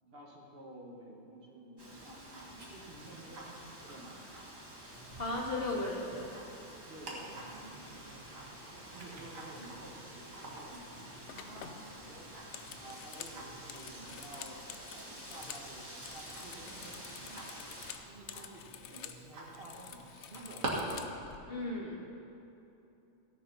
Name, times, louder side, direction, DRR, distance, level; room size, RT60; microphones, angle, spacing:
voice 1, 0.0-4.4 6.8-8.4 8.7-12.3 12.8-17.5 18.1-20.7, right 1 dB, 45° right, -1 dB, 1.8 m, -52 dB
Wind, 1.8-18.0, right 1 dB, 20° right, 1.6 m, -50 dB
Tick-tock, 1.8-20.7, right 2 dB, 85° right, 2.2 m, -49 dB
voice 2, 5.1-6.3 21.5-22.1, left 2 dB, 45° left, -3 dB, 1.8 m, -36 dB
sound 1, 10.9-11.0 11.3-15.7 16.0-19.2 19.5-21.4, left 9 dB, 65° left, 0.8 m, -49 dB
16.0 x 6.9 x 5.6 m, 2.8 s
omnidirectional pair, 1.4 m